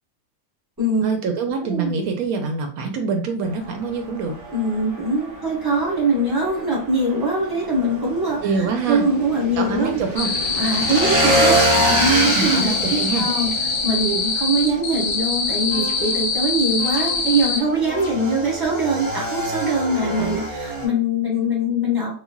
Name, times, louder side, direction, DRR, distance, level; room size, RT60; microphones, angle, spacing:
voice 1, 1.0-4.4 8.4-9.0 9.6-10.3 12.3-13.3 20.1-20.4, right 4 dB, 75° right, 4 dB, 1.0 m, -25 dB
voice 2, 1.6-1.9 4.5-10.0 10.6-11.6 11.8-13.5 13.8-22.1, right 1 dB, 20° right, -5 dB, 0.9 m, -22 dB
Motorcycle / Engine, 3.4-20.9, right 1 dB, 55° right, 0.4 m, -26 dB
sound 1, 10.2-17.6, left 4 dB, 80° left, 1.2 m, -23 dB
sound 2, 15.7-16.3 16.8-17.4 17.9-18.5 19.0-20.6, equal, 40° left, 0.4 m, -34 dB
3.2 x 2.1 x 2.2 m, 0.42 s
omnidirectional pair, 1.6 m